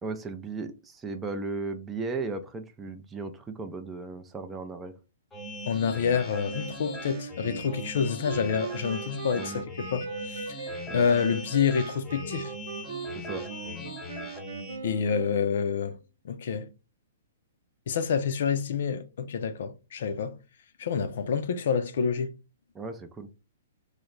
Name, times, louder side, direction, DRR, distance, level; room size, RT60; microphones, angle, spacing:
voice 1, 0.0-4.9 9.3-9.6 10.9-11.1 13.2-13.4 22.7-23.3, right 3 dB, 10° right, 0.3 m, -36 dB
sound 1, 5.3-14.8, left 1 dB, 10° left, 0.7 m, -40 dB
voice 2, 5.7-10.6 10.9-12.5 14.8-16.0 16.2-16.7 17.9-20.4 20.8-22.3, left 6 dB, 65° left, 0.4 m, -28 dB
Wind instrument woodwind instrument, 6.4-15.9, right 5 dB, 70° right, 0.7 m, -40 dB
3.1 x 2.0 x 3.7 m
hypercardioid pair, 145°, 0 cm